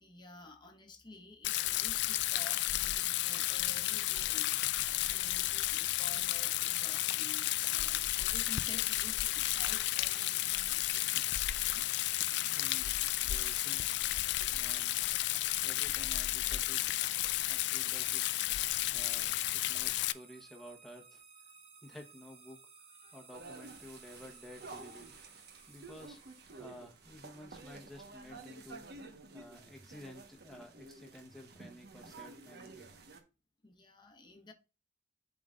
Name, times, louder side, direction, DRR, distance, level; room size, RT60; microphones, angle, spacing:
voice 1, 0.0-4.8 5.0-11.2 23.0-23.2 33.6-34.5, left 2 dB, 25° left, 1.1 m, -52 dB
Rain, 1.4-20.1, left 15 dB, 65° left, 0.3 m, -32 dB
voice 2, 12.4-13.0 13.2-13.9 14.5-15.0 15.6-16.8 17.5-18.3 18.9-21.2 21.8-22.7 23.1-25.1 25.7-26.2 26.6-28.9 29.3-32.9, left 1 dB, ahead, 1.0 m, -52 dB
sound 1, 18.4-27.4, right 5 dB, 30° right, 1.0 m, -58 dB
sound 2, 23.3-33.2, right 3 dB, 60° right, 1.1 m, -51 dB
11.5 x 3.8 x 2.4 m
head